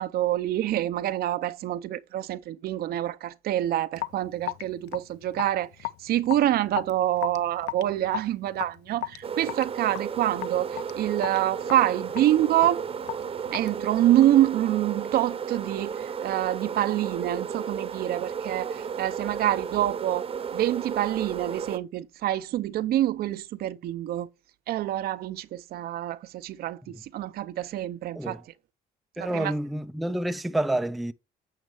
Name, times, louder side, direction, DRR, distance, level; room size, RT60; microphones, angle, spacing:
voice 1, 0.0-12.8 13.5-20.3 20.5-24.3 24.7-28.4 29.2-29.5, right 13 dB, 65° right, 0.6 m, -26 dB
Raindrop / Drip, 3.9-14.5, left 17 dB, 85° left, 0.5 m, -37 dB
sound 1, 9.2-21.8, right 7 dB, 35° right, 0.8 m, -34 dB
voice 2, 29.2-31.1, right 1 dB, ahead, 0.4 m, -29 dB
9.0 x 6.5 x 3.4 m
cardioid pair, 110°, 17 cm